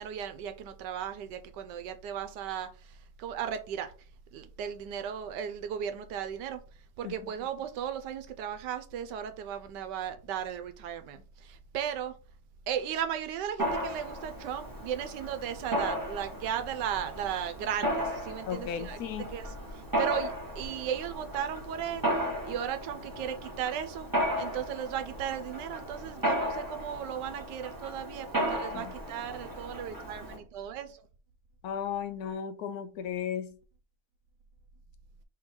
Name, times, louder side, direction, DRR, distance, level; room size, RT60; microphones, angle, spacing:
voice 1, 0.0-3.9 4.3-6.6 7.0-12.1 12.7-19.0 19.3-22.1 22.4-24.1 24.4-31.0, right 9 dB, 90° right, 1.3 m, -36 dB
Mechanisms, 13.6-30.4, equal, 15° right, 1.2 m, -35 dB
voice 2, 18.5-19.3 28.7-28.9 31.6-33.6, left 8 dB, 70° left, 1.0 m, -35 dB
3.8 x 3.1 x 4.3 m
omnidirectional pair, 1.8 m